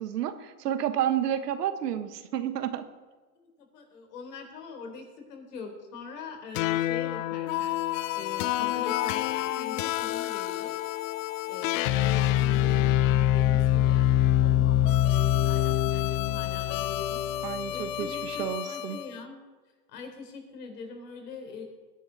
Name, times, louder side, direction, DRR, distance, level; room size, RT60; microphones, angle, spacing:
voice 1, 0.0-2.9 17.4-19.0, right 10 dB, 80° right, 10 dB, 1.5 m, -30 dB
voice 2, 3.6-7.8 8.1-10.8 11.5-19.4 19.9-21.6, left 5 dB, 75° left, 3 dB, 4.2 m, -43 dB
sound 1, 6.5-19.1, left 13 dB, 55° left, 0.7 m, -26 dB
20.5 x 10.5 x 4.2 m, 1.4 s
hypercardioid pair, 120°, 47 cm